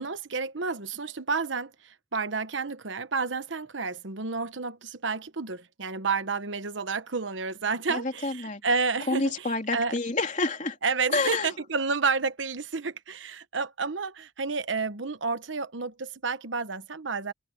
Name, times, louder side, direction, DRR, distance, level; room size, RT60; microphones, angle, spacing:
voice 1, 0.0-9.3 9.7-9.9 10.8-17.3, right 4 dB, 75° right, 1.1 m, -30 dB
voice 2, 7.9-8.6 9.1-10.8 11.1-11.6, left 3 dB, 40° left, 3.4 m, -28 dB
head